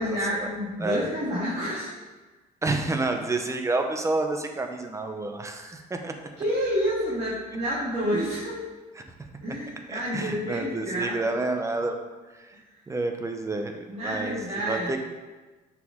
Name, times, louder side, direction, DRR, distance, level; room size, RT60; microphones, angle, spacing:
voice 1, 0.0-1.9 6.4-8.7 9.4-11.3 13.9-15.0, equal, 40° right, -8 dB, 1.7 m, -29 dB
voice 2, 2.6-6.3 9.0-9.3 9.9-12.0 12.4-12.6 12.9-13.7 14.0-15.0, right 2 dB, 15° right, 5 dB, 0.8 m, -29 dB
7.7 x 5.0 x 3.7 m, 1.3 s
cardioid pair, 110°, 17 cm